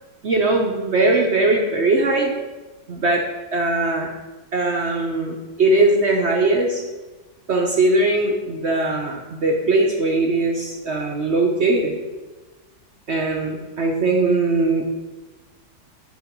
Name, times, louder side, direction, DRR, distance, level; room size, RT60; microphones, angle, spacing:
voice 1, 0.2-2.3 2.9-3.2 3.5-4.1 4.5-6.8 7.5-12.0 13.1-14.8, right 2 dB, 50° right, 1 dB, 0.9 m, -20 dB
7.6 x 4.7 x 6.0 m, 1.2 s
omnidirectional pair, 1.8 m